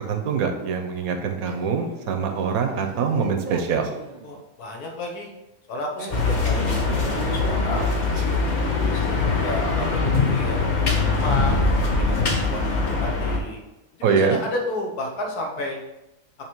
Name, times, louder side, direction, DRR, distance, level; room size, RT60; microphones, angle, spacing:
voice 1, 0.1-3.9 14.0-14.4, right 6 dB, 75° right, 5 dB, 1.1 m, -24 dB
Male speech man speaking, 1.4-4.4 6.0-9.0, right 3 dB, 55° right, 0.5 m, -37 dB
voice 2, 4.2-5.3 5.7-7.9 8.7-13.6 14.0-15.8, left 1 dB, 80° left, 1 dB, 1.6 m, -32 dB
sound 1, 6.1-13.4, left 3 dB, 40° left, 0.7 m, -22 dB
7.3 x 3.1 x 4.5 m, 0.96 s
omnidirectional pair, 1.6 m